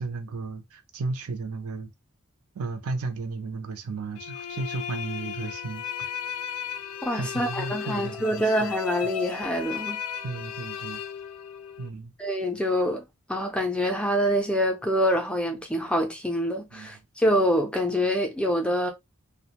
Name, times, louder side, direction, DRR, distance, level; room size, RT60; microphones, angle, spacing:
voice 1, 0.0-1.9 2.5-6.1 7.2-8.4 10.2-11.0 11.8-12.1 16.7-16.9, right 3 dB, 75° right, 0.5 m, -34 dB
sound 1, 4.2-11.9, left 7 dB, 85° left, 0.4 m, -35 dB
voice 2, 7.0-10.0 12.2-13.0 13.3-18.9, equal, 5° left, 0.4 m, -25 dB
2.4 x 2.1 x 2.8 m
head